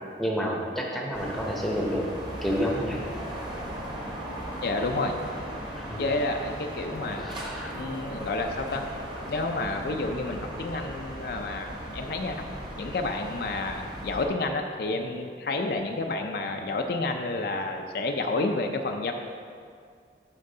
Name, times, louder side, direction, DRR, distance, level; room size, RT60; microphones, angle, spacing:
voice 1, 0.2-2.1 2.4-3.0 5.8-6.0 7.1-7.7, equal, ahead, -2 dB, 0.8 m, -29 dB
sound 1, 1.1-14.2, right 1 dB, 25° right, 1.2 m, -37 dB
voice 2, 4.6-5.2 6.0-7.3 7.7-8.9 9.3-11.7 11.9-12.4 12.8-19.1, left 2 dB, 55° left, 4 dB, 0.5 m, -30 dB
10.5 x 4.5 x 3.8 m, 2.2 s
head